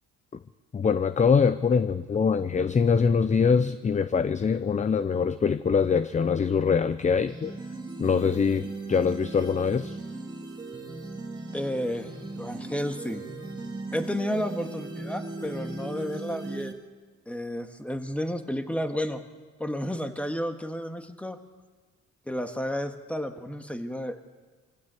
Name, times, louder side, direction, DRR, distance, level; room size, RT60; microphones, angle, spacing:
voice 1, 0.7-7.6 8.0-10.0, left 6 dB, 25° left, 14 dB, 0.6 m, -23 dB
sound 1, 7.1-16.7, right 3 dB, 15° right, 2.2 m, -38 dB
voice 2, 11.5-13.2 13.9-16.7 17.3-19.2 19.6-21.4 22.3-24.2, equal, 5° left, 7 dB, 1.7 m, -31 dB
24.0 x 15.5 x 8.3 m, 1.4 s
cardioid pair, 90°, 30 cm